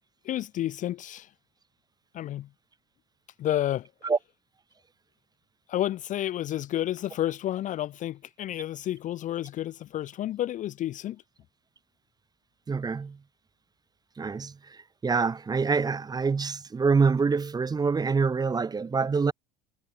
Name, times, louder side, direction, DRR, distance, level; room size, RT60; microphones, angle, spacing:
voice 1, 0.2-1.3 2.1-2.5 3.4-3.9 5.7-11.2, left 13 dB, 40° left, 0.5 m, -30 dB
voice 2, 12.7-13.2 14.2-19.3, right 5 dB, 20° right, 0.8 m, -26 dB
hypercardioid pair, 65°, 20 cm